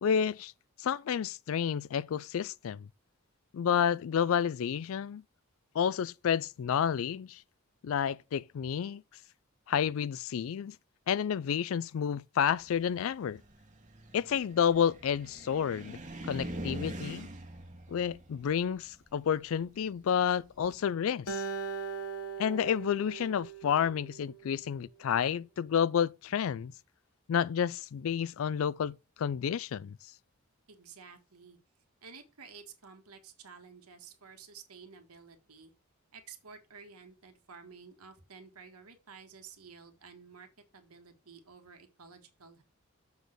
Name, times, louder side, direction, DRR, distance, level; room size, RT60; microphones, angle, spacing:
voice 1, 0.0-0.5 0.8-2.9 3.5-5.2 5.7-7.4 7.8-9.0 9.7-10.8 11.1-13.4 14.1-16.0 16.3-17.3 17.9-21.4 22.4-26.7 27.3-30.0, left 8 dB, 65° left, 0.3 m, -30 dB
Car, 12.6-20.8, right 1 dB, 35° right, 1.5 m, -44 dB
Acoustic guitar, 21.3-24.6, right 4 dB, 85° left, 1.1 m, -39 dB
voice 2, 30.7-31.6 32.0-35.7 36.1-40.5 40.7-42.6, right 5 dB, 85° right, 1.5 m, -52 dB
7.1 x 4.0 x 6.4 m
head